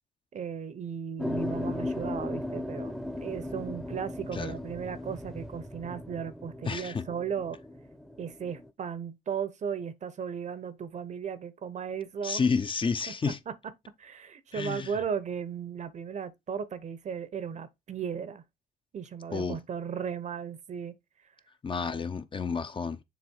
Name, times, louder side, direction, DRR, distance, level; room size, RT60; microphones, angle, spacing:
voice 1, 0.3-3.0 3.2-7.6 8.2-12.4 13.1-13.3 13.9-18.4 18.9-20.9, right 7 dB, 45° right, 0.8 m, -36 dB
sound 1, 1.2-8.7, left 1 dB, ahead, 0.8 m, -37 dB
voice 2, 6.7-7.0 12.2-13.4 14.5-15.0 19.3-19.6 21.6-23.0, left 5 dB, 30° left, 0.7 m, -30 dB
7.2 x 3.1 x 4.4 m
supercardioid pair, 65°, 16 cm